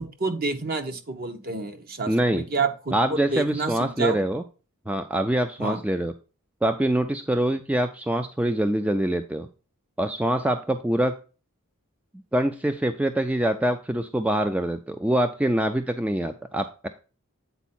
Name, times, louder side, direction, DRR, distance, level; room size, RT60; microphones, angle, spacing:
voice 1, 0.0-3.0 3.3-4.2 5.6-5.8, right 4 dB, 45° right, 7 dB, 1.0 m, -29 dB
voice 2, 2.1-2.4 2.9-4.4 4.9-6.1 6.6-9.5 10.0-11.2 12.3-16.9, right 1 dB, 5° right, 8 dB, 0.3 m, -24 dB
8.2 x 4.5 x 4.3 m, 0.34 s
head